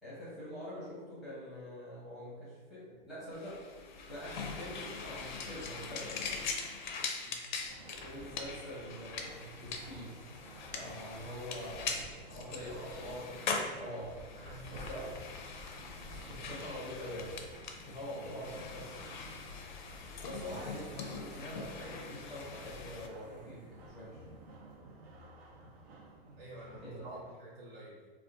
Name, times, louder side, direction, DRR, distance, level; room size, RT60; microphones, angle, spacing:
voice 1, 0.0-3.5 4.1-6.3 7.8-10.2 10.7-13.2 13.8-14.1 14.7-15.0 16.0-19.1 20.2-24.2 26.8-27.1, equal, ahead, -11 dB, 0.6 m, -45 dB
sound 1, 3.3-23.1, left 4 dB, 55° left, 0.4 m, -42 dB
sound 2, 7.6-27.3, right 1 dB, 90° right, 0.7 m, -53 dB
voice 2, 12.1-13.0 14.2-15.4 20.2-20.9 26.4-28.1, right 1 dB, 65° right, -7 dB, 1.0 m, -52 dB
sound 3, 19.2-19.9 20.1-22.1 23.1-24.6, right 2 dB, 45° right, 0.6 m, -56 dB
2.4 x 2.3 x 3.8 m, 1.5 s
supercardioid pair, 180°, 29 cm